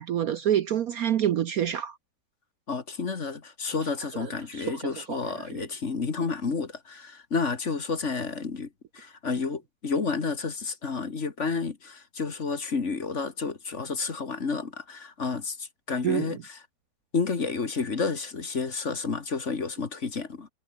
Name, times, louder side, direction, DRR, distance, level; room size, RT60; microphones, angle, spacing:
voice 1, 0.0-2.0 4.2-4.8 5.1-5.2 5.5-5.7 16.0-16.4, right 10 dB, 60° right, 1.1 m, -27 dB
voice 2, 2.7-16.6 17.1-20.5, left 4 dB, 40° left, 2.0 m, -30 dB
omnidirectional pair, 2.0 m